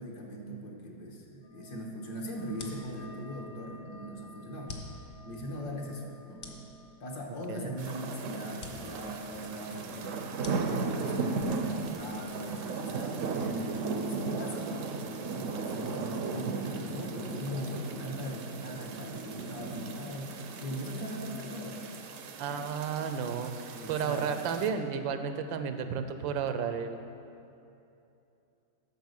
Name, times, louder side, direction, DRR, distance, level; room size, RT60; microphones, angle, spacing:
voice 1, 0.0-4.7 5.2-6.6 7.0-14.7 15.1-21.8 23.7-24.3, equal, 60° left, 0 dB, 1.8 m, -40 dB
sound 1, 1.4-16.6 16.8-17.6 17.9-18.7 19.0-19.4, equal, 85° left, 3.5 m, -57 dB
sound 2, 2.5-12.4, left 3 dB, 40° left, 1.0 m, -51 dB
sound 3, 7.8-24.7, right 4 dB, 60° right, 0.8 m, -36 dB
voice 2, 22.4-23.5 23.9-27.0, right 7 dB, 80° right, 8 dB, 1.4 m, -32 dB
9.5 x 6.7 x 6.5 m, 2.8 s
omnidirectional pair, 2.1 m